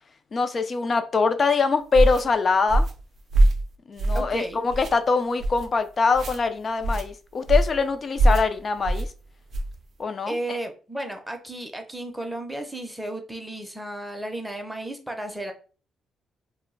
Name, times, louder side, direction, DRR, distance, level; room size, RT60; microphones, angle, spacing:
voice 1, 0.3-2.8 3.9-9.1 10.0-10.6, left 4 dB, 40° left, 0.4 m, -23 dB
sound 1, 1.9-2.2 2.7-3.0 3.3-3.6 4.0-4.4 4.7-4.9 5.4-5.7 6.1-6.4 6.8-7.1 7.5-7.8 8.2-8.5 8.8-9.1 9.5-9.8, right 1 dB, 50° right, 0.4 m, -21 dB
voice 2, 4.1-4.6 10.3-15.5, right 1 dB, 5° right, 0.6 m, -33 dB
2.1 x 2.0 x 3.7 m
cardioid pair, 90°, 0 cm